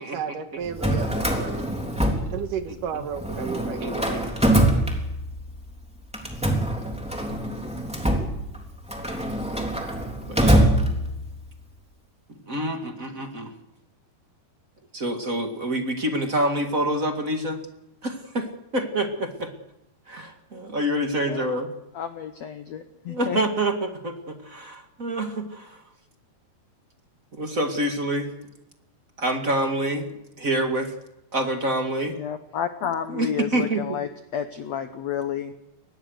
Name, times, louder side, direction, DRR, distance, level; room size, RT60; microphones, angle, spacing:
voice 1, 0.0-4.6, right 7 dB, 65° right, 7 dB, 2.5 m, -34 dB
Drawer open or close, 0.6-2.8 3.1-5.5 6.1-11.4, right 1 dB, ahead, 2.7 m, -24 dB
voice 2, 3.8-4.2 10.2-10.7 12.5-13.5 14.9-17.6 18.0-19.5 20.1-21.7 23.1-25.8 27.3-28.3 29.2-30.1 30.4-30.9 31.3-32.1 33.1-34.0, right 1 dB, 30° right, 4 dB, 1.6 m, -27 dB
voice 3, 21.9-23.4 32.1-35.5, left 8 dB, 85° left, 9 dB, 1.5 m, -31 dB
23.5 x 20.0 x 6.5 m, 0.91 s
omnidirectional pair, 4.7 m